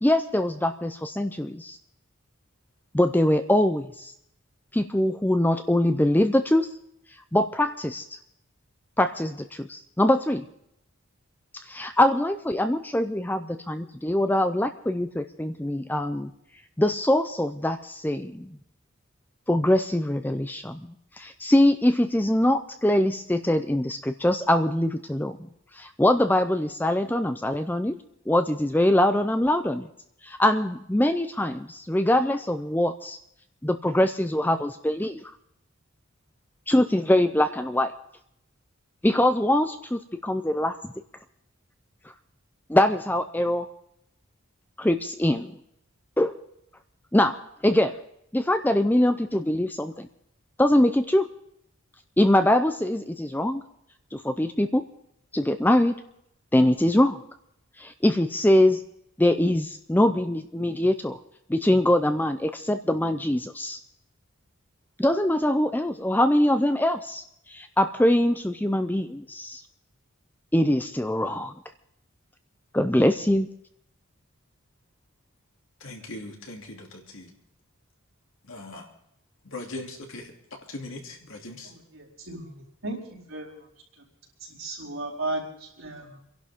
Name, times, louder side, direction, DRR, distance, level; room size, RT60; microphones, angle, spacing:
voice 1, 0.0-1.8 2.9-4.1 4.7-6.7 7.3-8.2 9.0-10.4 11.6-16.3 16.8-18.6 19.5-20.9 21.2-25.4 25.7-28.0 28.3-29.9 30.2-33.2 33.6-35.3 36.7-37.9 39.0-40.7 42.7-43.7 44.8-45.5 46.2-46.4 47.1-47.4 47.6-48.0 48.3-50.1 50.6-51.3 52.2-53.6 54.1-54.8 55.3-55.9 56.5-57.2 57.8-58.8 59.2-61.2 61.5-63.8 65.0-69.6 70.5-71.5 72.7-73.5, left 1 dB, 10° left, 8 dB, 0.5 m, -23 dB
voice 2, 75.8-77.3 78.4-78.9 79.4-81.7, left 2 dB, 70° left, 1 dB, 2.9 m, -40 dB
voice 3, 81.6-83.5 84.4-86.2, right 2 dB, 80° right, -5 dB, 4.4 m, -35 dB
28.5 x 11.5 x 3.6 m, 0.76 s
head